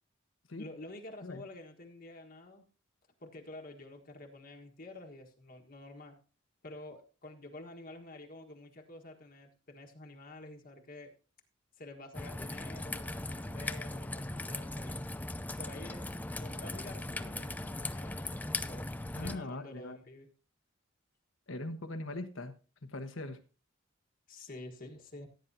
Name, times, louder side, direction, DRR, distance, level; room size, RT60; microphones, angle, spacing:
voice 1, 0.6-2.7 3.2-6.2 6.6-11.1 11.8-15.0 15.6-20.3 24.3-25.3, left 2 dB, 45° left, 2 dB, 1.5 m, -49 dB
Raindrop / Trickle dribble, 12.1-19.4, left 2 dB, 10° left, 0.4 m, -39 dB
voice 2, 19.1-20.0 21.5-22.5 22.9-23.4, left 2 dB, 75° left, 8 dB, 1.3 m, -40 dB
16.0 x 9.5 x 2.8 m, 0.36 s
head